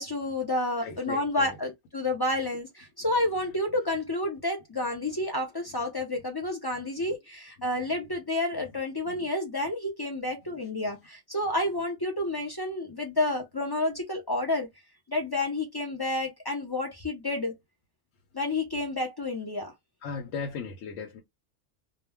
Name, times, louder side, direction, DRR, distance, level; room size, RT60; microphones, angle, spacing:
voice 1, 0.0-14.7 15.1-17.5 18.3-19.7, left 2 dB, 40° left, 0.3 m, -30 dB
voice 2, 0.8-1.6 6.7-7.1 8.5-8.6 9.0-9.3 10.5-10.6 20.0-21.2, left 5 dB, 80° left, 1.0 m, -38 dB
2.3 x 2.2 x 3.3 m
omnidirectional pair, 1.3 m